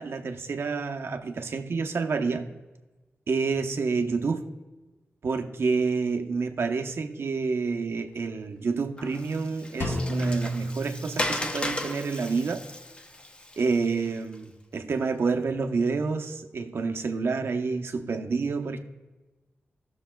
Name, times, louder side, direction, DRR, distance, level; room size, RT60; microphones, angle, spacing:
voice 1, 0.0-2.5 3.3-4.5 5.2-12.6 13.6-18.8, right 4 dB, 70° right, 5 dB, 0.8 m, -28 dB
Water, 9.0-14.3, left 1 dB, 25° left, 0.7 m, -35 dB
Drum, 9.8-11.7, equal, 70° left, 2.0 m, -31 dB
18.5 x 6.7 x 2.3 m, 1.2 s
wide cardioid pair, 90°, 4 cm